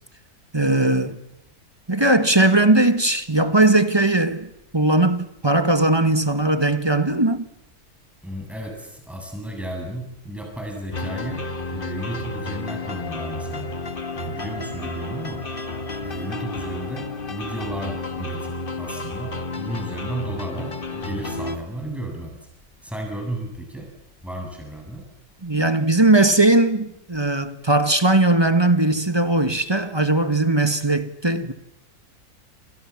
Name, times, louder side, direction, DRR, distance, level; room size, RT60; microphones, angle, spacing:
voice 1, 0.5-1.2 1.9-7.4 25.4-31.5, right 2 dB, 20° right, 1.5 m, -19 dB
voice 2, 8.2-13.7 14.2-15.4 16.0-22.4 22.8-23.9 24.2-25.1, right 1 dB, ahead, 7.7 m, -33 dB
sound 1, 10.9-21.6, left 2 dB, 35° left, 1.9 m, -31 dB
29.0 x 28.0 x 7.4 m
omnidirectional pair, 1.6 m